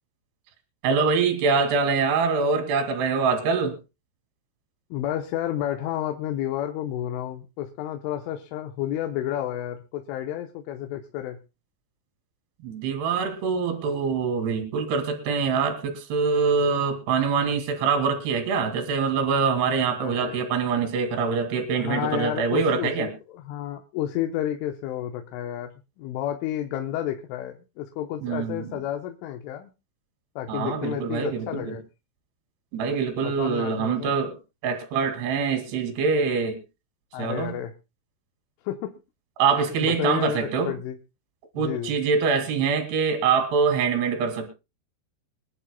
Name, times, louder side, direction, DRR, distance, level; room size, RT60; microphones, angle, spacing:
voice 1, 0.8-3.8 12.6-23.1 28.2-28.8 30.5-31.8 32.7-34.3 34.6-36.6 37.2-37.5 39.4-40.7 41.6-44.5, right 5 dB, 60° right, 6 dB, 4.2 m, -24 dB
voice 2, 4.9-11.4 20.0-20.4 21.8-25.7 26.0-29.7 30.4-31.8 33.2-34.1 37.1-37.7 38.6-38.9 39.5-41.0 41.6-41.9, left 11 dB, 85° left, 4 dB, 3.4 m, -31 dB
25.5 x 11.0 x 2.2 m, 0.28 s
omnidirectional pair, 5.5 m